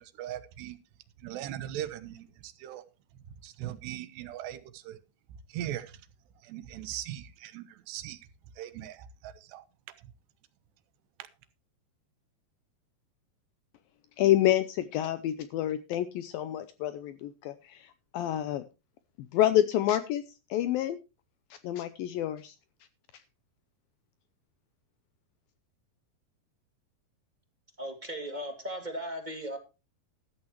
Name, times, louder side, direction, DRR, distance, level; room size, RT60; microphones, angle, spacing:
voice 1, 0.2-0.8 1.2-2.8 3.4-5.0 5.5-6.0 6.4-8.2 8.6-9.6, right 12 dB, 85° right, 12 dB, 3.2 m, -39 dB
voice 2, 14.2-18.6 19.2-20.2 20.5-21.0 21.6-22.6, left 12 dB, 80° left, 13 dB, 2.1 m, -28 dB
voice 3, 27.8-29.6, equal, 20° right, 4 dB, 1.3 m, -37 dB
14.0 x 12.5 x 3.0 m, 0.29 s
omnidirectional pair, 4.8 m